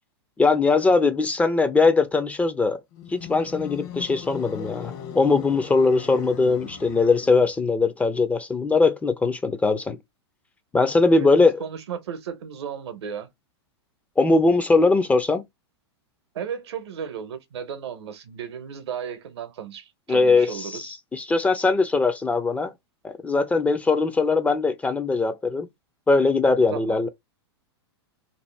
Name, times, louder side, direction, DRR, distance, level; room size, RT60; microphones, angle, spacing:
voice 1, 0.4-2.8 3.1-10.0 10.7-11.6 14.2-15.4 20.1-20.8 21.1-22.7 23.0-25.7 26.1-27.1, left 3 dB, 10° left, 0.3 m, -20 dB
sound 1, 2.9-7.6, left 8 dB, 50° left, 0.7 m, -39 dB
voice 2, 11.6-13.3 16.3-21.0 26.7-27.0, right 8 dB, 75° right, 0.7 m, -34 dB
2.6 x 2.0 x 3.1 m
hypercardioid pair, 115°, 14 cm